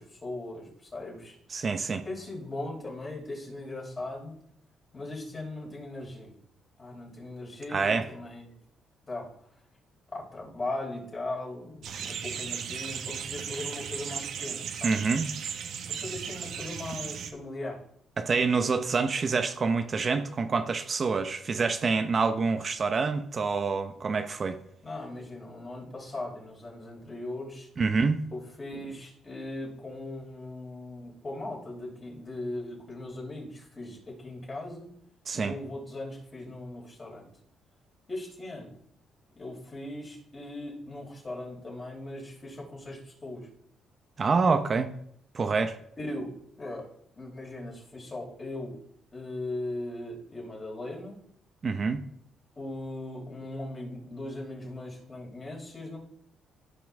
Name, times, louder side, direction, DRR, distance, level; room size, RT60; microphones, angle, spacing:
voice 1, 0.0-1.4 2.0-4.4 4.9-6.4 6.8-8.6 9.1-9.3 10.1-15.0 15.9-17.8 24.8-27.7 28.3-34.9 35.3-37.3 38.1-38.8 39.4-43.5 46.0-48.8 49.1-51.2 52.6-56.0, left 2 dB, 30° left, -2 dB, 4.6 m, -39 dB
voice 2, 1.5-2.0 7.7-8.1 14.8-15.3 18.2-24.6 27.8-28.2 35.3-35.5 44.2-44.9 45.3-45.8 51.6-52.0, right 4 dB, 40° right, 7 dB, 0.8 m, -26 dB
sound 1, 11.8-17.3, right 7 dB, 75° right, 1.2 m, -36 dB
15.5 x 5.8 x 3.5 m, 0.70 s
cardioid pair, 90°, 0 cm